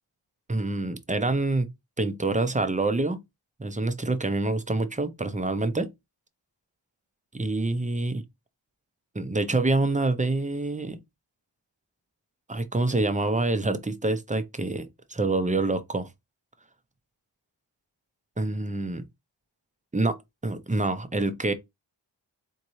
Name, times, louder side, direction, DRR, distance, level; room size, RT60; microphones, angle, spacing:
voice 1, 0.5-1.7 2.0-3.2 3.6-5.9 7.3-8.2 9.1-11.0 12.5-16.1 18.4-19.1 19.9-20.2 20.4-21.5, right 2 dB, 15° right, 0.6 m, -26 dB
4.1 x 3.7 x 3.1 m
wide cardioid pair, 50°, 48 cm